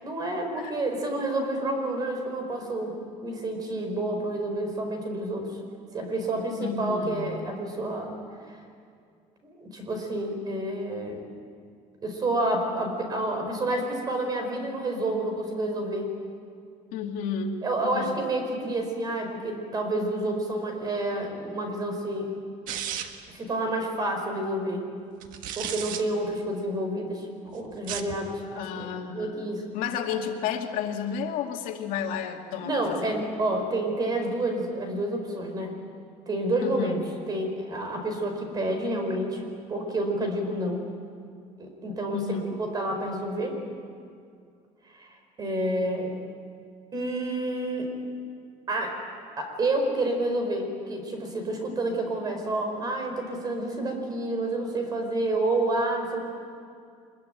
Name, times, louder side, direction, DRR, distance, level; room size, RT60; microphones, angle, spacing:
voice 1, 0.0-3.0 3.2-5.5 5.9-8.2 8.5-8.6 9.4-11.2 12.0-16.1 17.6-22.4 23.3-24.9 25.5-29.7 32.6-35.8 36.3-37.0 37.3-40.8 41.6-43.6 44.9-46.2 46.9-47.9 48.7-49.0 49.4-56.2, right 1 dB, 30° right, 4 dB, 4.7 m, -29 dB
voice 2, 6.6-7.4 16.9-18.1 28.6-33.1 36.6-37.0 42.1-42.6, left 6 dB, 80° left, 2 dB, 2.5 m, -32 dB
sound 1, 22.7-23.3 25.2-26.0 27.7-28.2, right 9 dB, 70° right, 1.7 m, -34 dB
25.0 x 22.5 x 9.1 m, 2.3 s
cardioid pair, 165°, 14 cm